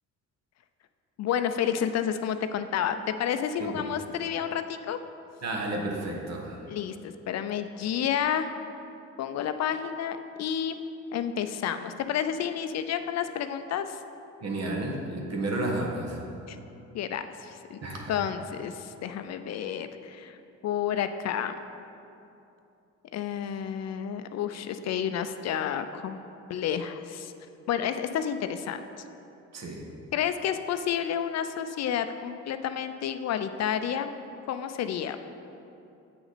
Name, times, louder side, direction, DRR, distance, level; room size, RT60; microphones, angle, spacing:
voice 1, 1.2-5.0 6.7-8.5 9.2-10.8 11.1-14.0 16.5-16.6 16.9-17.8 18.1-20.4 20.6-21.6 23.1-26.2 26.5-27.3 27.7-28.8 30.1-34.1 34.5-35.2, left 9 dB, 60° left, 9 dB, 0.5 m, -30 dB
voice 2, 5.4-6.6 14.4-16.2 17.8-18.2 29.5-29.8, right 2 dB, 60° right, 0 dB, 1.3 m, -31 dB
7.9 x 6.0 x 4.1 m, 2.7 s
cardioid pair, 90°, 30 cm